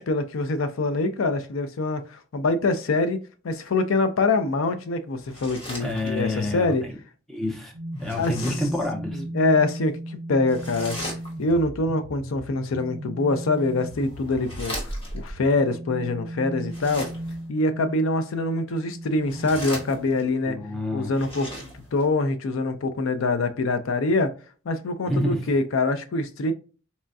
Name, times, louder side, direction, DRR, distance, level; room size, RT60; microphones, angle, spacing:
voice 1, 0.0-3.2 3.4-6.8 8.1-8.4 9.1-11.0 11.4-17.1 17.5-20.6 20.9-24.3 24.7-26.5, left 2 dB, 75° left, 0.5 m, -24 dB
sound 1, 5.2-6.4 7.9-8.8 10.5-11.6 13.4-15.3 16.6-17.5 19.1-20.4 21.0-22.1, left 1 dB, 25° left, 1.2 m, -39 dB
voice 2, 5.8-6.7 7.3-7.7 8.0-9.2 20.5-21.1 25.1-25.5, left 1 dB, ahead, 0.7 m, -28 dB
sound 2, 7.7-20.6, right 1 dB, 40° right, 0.8 m, -37 dB
4.2 x 2.3 x 2.5 m
head